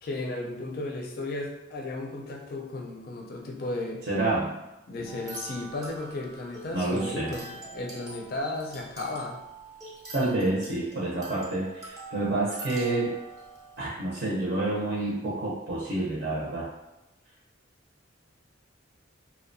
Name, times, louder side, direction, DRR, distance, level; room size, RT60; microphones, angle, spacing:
voice 1, 0.0-4.0 4.9-9.4, left 2 dB, 45° left, 0 dB, 0.4 m, -35 dB
voice 2, 4.1-4.5 6.7-7.4 10.1-13.1 13.8-16.7, right 2 dB, 60° right, -7 dB, 0.6 m, -28 dB
sound 1, 5.0-13.9, right 2 dB, 20° right, 0.5 m, -44 dB
2.7 x 2.1 x 2.5 m, 0.96 s
head